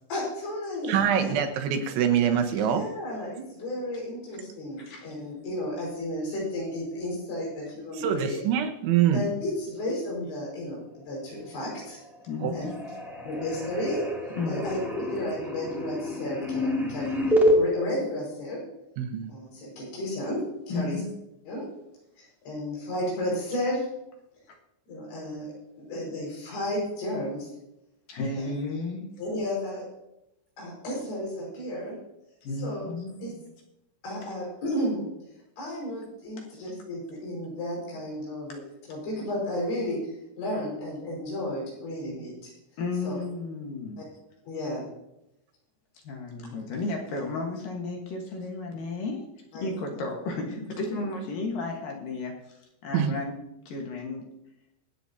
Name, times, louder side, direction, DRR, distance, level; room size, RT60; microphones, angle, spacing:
voice 1, 0.1-1.3 2.6-8.4 9.1-12.0 12.5-12.7 13.2-14.0 14.4-14.8 15.1-18.6 19.3-21.0 21.5-21.6 22.2-23.9 24.9-25.5 25.9-27.5 28.4-28.5 29.2-29.9 30.6-32.0 32.6-32.9 33.2-33.4 34.0-35.1 35.6-40.0 40.4-42.5 43.0-43.2 44.5-44.9 49.5-49.7, left 1 dB, 75° left, -3 dB, 7.6 m, -33 dB
voice 2, 0.9-2.9 8.0-9.2 12.4-12.5 19.0-19.3 52.9-53.2, right 9 dB, 80° right, 4 dB, 3.6 m, -24 dB
sound 1, 11.7-12.1 12.4-17.6, left 1 dB, ahead, 0.8 m, -28 dB
voice 3, 12.2-12.9 14.4-14.7 20.7-21.1 28.1-29.1 32.4-33.3 36.4-36.5 42.8-44.1 46.0-49.2 49.6-52.4 52.8-53.4 53.7-54.3, left 3 dB, 60° left, 1 dB, 2.7 m, -33 dB
24.5 x 8.8 x 2.8 m, 0.86 s
omnidirectional pair, 5.3 m